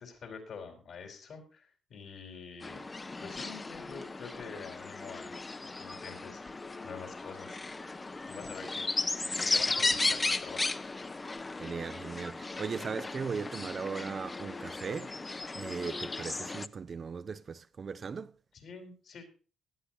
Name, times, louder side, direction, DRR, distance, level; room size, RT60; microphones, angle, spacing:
voice 1, 0.0-2.8 3.2-5.4 5.8-6.4 6.8-7.6 8.2-8.9 9.3-10.7 18.5-19.3, left 5 dB, 65° left, 4.4 m, -46 dB
sound 1, 2.6-16.7, left 3 dB, 25° left, 0.7 m, -35 dB
voice 2, 11.6-15.1 15.5-18.3, right 5 dB, 45° right, 0.7 m, -38 dB
18.0 x 12.0 x 2.8 m
cardioid pair, 90°, 0 cm